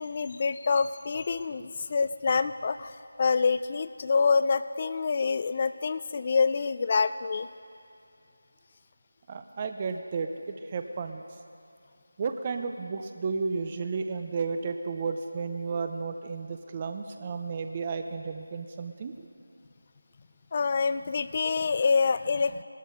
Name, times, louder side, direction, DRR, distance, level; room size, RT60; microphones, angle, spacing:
voice 1, 0.0-2.9 3.2-7.5 20.5-22.6, left 5 dB, 30° left, 13 dB, 0.3 m, -26 dB
voice 2, 9.3-11.2 12.2-19.1, right 4 dB, 25° right, 7 dB, 0.5 m, -33 dB
20.0 x 13.0 x 3.7 m, 2.6 s
figure-of-eight pair, 170°, 0 cm